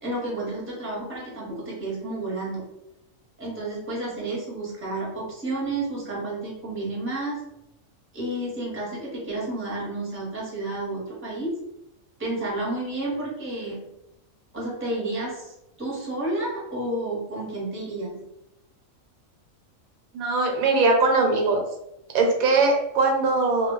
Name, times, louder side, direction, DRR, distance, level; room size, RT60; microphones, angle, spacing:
voice 1, 0.0-2.6 3.4-7.4 8.1-11.6 12.2-13.9 14.5-18.2, right 2 dB, 10° right, -5 dB, 0.7 m, -31 dB
voice 2, 20.1-21.6 22.1-23.7, right 3 dB, 85° right, 2 dB, 1.1 m, -21 dB
2.3 x 2.2 x 3.6 m, 0.85 s
omnidirectional pair, 1.4 m